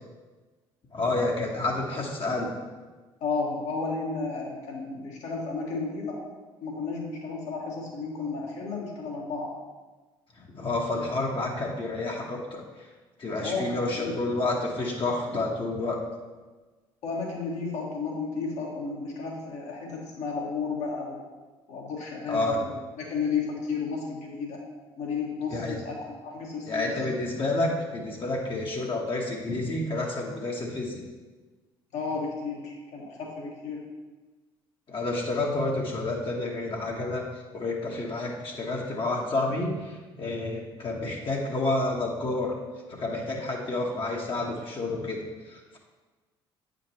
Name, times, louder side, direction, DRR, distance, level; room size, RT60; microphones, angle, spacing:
voice 1, 0.9-2.5 10.4-12.9 13.2-16.0 22.3-22.6 25.5-25.8 26.7-31.0 34.9-37.2 37.5-42.5 42.9-45.8, left 2 dB, 45° left, -2 dB, 1.2 m, -29 dB
voice 2, 3.2-6.2 6.6-9.5 13.4-14.1 17.0-21.2 21.7-24.6 25.0-26.0 26.2-26.9 31.9-33.8, left 4 dB, 65° left, -2 dB, 1.6 m, -33 dB
8.5 x 5.0 x 2.9 m, 1.3 s
hypercardioid pair, 55°, 12 cm